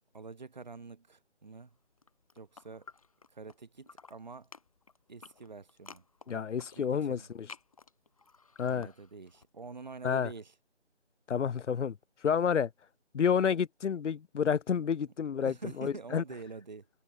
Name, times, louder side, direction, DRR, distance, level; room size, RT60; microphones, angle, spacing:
voice 1, 0.1-1.7 2.3-2.9 3.3-4.5 5.1-6.4 6.7-7.3 8.7-10.5 15.4-16.9, right 4 dB, 40° right, 4.6 m, -46 dB
sound 1, 1.9-3.6 3.8-9.5, left 4 dB, 30° left, 2.3 m, -54 dB
voice 2, 6.3-7.5 8.6-8.9 10.0-10.3 11.3-12.0 12.2-12.7 13.1-16.2, left 7 dB, 90° left, 0.5 m, -29 dB
figure-of-eight pair, 165°, 35 cm